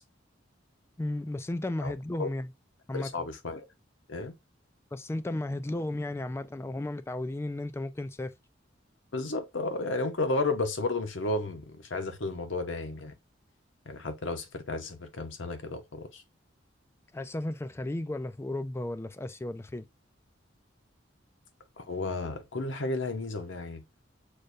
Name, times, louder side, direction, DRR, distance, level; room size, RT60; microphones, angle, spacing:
voice 1, 1.0-2.5 2.9-3.1 4.9-8.3 17.1-19.8, left 1 dB, 15° left, 0.3 m, -34 dB
voice 2, 2.9-3.6 4.1-4.3 9.1-13.1 13.9-16.2 21.8-23.8, left 2 dB, 80° left, 0.9 m, -33 dB
6.5 x 2.2 x 2.5 m
head